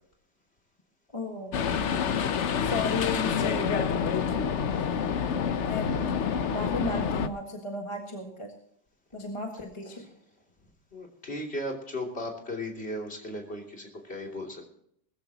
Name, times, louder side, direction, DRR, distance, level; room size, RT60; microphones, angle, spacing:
voice 1, 1.1-1.6 2.6-4.0 5.6-5.9 6.5-8.5 9.1-10.0, left 3 dB, 20° left, 2 dB, 1.6 m, -34 dB
sound 1, 1.5-7.3, left 7 dB, 50° left, 0.9 m, -27 dB
voice 2, 10.9-14.7, left 1 dB, 35° left, 0 dB, 3.2 m, -36 dB
20.0 x 14.5 x 2.9 m, 0.69 s
omnidirectional pair, 1.9 m